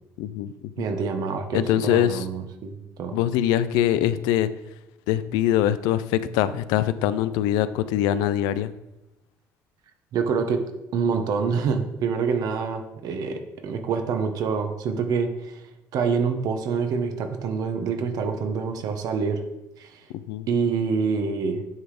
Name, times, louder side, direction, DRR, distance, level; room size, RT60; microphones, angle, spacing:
voice 1, 0.2-0.5 1.5-2.2 3.1-4.5 5.1-8.7 20.3-20.5, left 11 dB, 85° left, 14 dB, 0.5 m, -23 dB
voice 2, 0.8-3.2 10.1-10.6 10.9-15.6 15.9-19.4 19.8-20.0 20.5-21.6, right 5 dB, 65° right, 6 dB, 1.3 m, -26 dB
9.4 x 4.0 x 5.0 m, 0.91 s
supercardioid pair, 80°, 7 cm